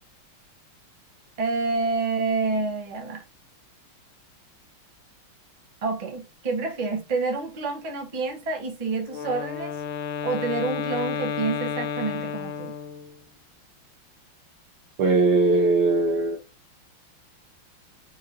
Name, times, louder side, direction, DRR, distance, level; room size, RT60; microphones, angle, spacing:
voice 1, 1.4-3.2 5.8-9.8 10.2-12.7, right 3 dB, 35° right, 0.6 m, -28 dB
Wind instrument woodwind instrument, 9.1-13.2, left 7 dB, 75° left, 1.3 m, -31 dB
voice 2, 15.0-16.4, right 3 dB, 75° right, 0.9 m, -20 dB
4.6 x 2.9 x 2.4 m
omnidirectional pair, 2.3 m